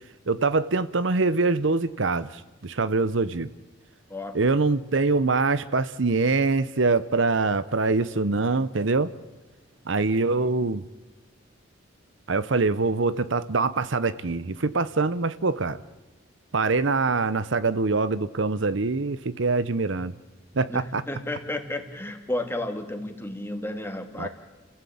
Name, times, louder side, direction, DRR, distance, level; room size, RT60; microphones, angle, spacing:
voice 1, 0.3-3.5 4.3-9.1 9.9-10.8 12.3-15.8 16.5-20.1 20.6-21.0 24.2-24.3, right 3 dB, 70° right, 15 dB, 0.8 m, -24 dB
voice 2, 20.7-24.3, left 1 dB, 10° left, 6 dB, 2.2 m, -32 dB
29.5 x 15.5 x 8.6 m, 1.2 s
head